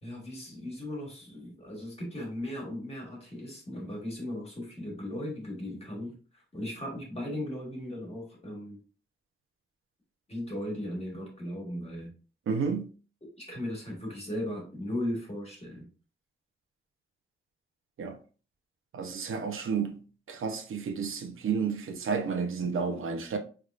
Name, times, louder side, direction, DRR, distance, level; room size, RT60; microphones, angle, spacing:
voice 1, 0.0-8.8 10.3-12.1 13.4-15.9, left 1 dB, 30° left, 1.7 m, -37 dB
voice 2, 12.5-12.9 18.0-18.2 18.9-20.0 20.3-23.4, right 5 dB, 75° right, 0.7 m, -31 dB
4.8 x 3.4 x 2.4 m
wide cardioid pair, 145°, 21 cm